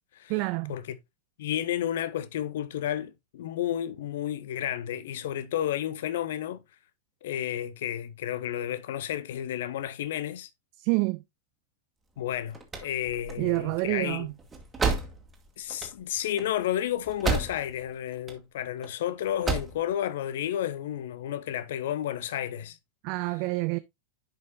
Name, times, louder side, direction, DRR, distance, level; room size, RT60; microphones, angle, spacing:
voice 1, 0.3-0.8 10.8-11.2 13.4-14.3 23.0-23.8, right 24 dB, 45° right, 0.4 m, -28 dB
voice 2, 1.4-6.6 7.2-10.5 12.2-14.3 15.6-22.8, left 11 dB, 55° left, 0.7 m, -31 dB
sound 1, 12.3-17.9 18.1-18.9 19.2-19.8, right 4 dB, 15° right, 1.7 m, -32 dB
10.5 x 5.2 x 2.5 m
figure-of-eight pair, 90°, 0 cm